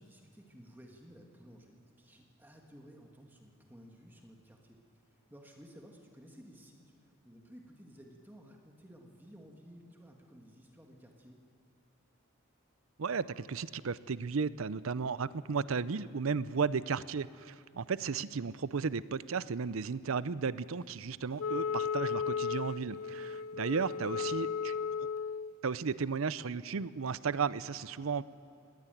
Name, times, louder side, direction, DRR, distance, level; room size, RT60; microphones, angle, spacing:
voice 1, 0.0-11.4 23.7-24.2, equal, 10° right, 1 dB, 1.8 m, -55 dB
voice 2, 13.0-24.8 25.6-28.2, right 5 dB, 80° right, 17 dB, 0.6 m, -34 dB
Wind instrument woodwind instrument, 21.4-25.5, left 6 dB, 90° left, 0.5 m, -35 dB
20.0 x 16.0 x 9.2 m, 2.7 s
head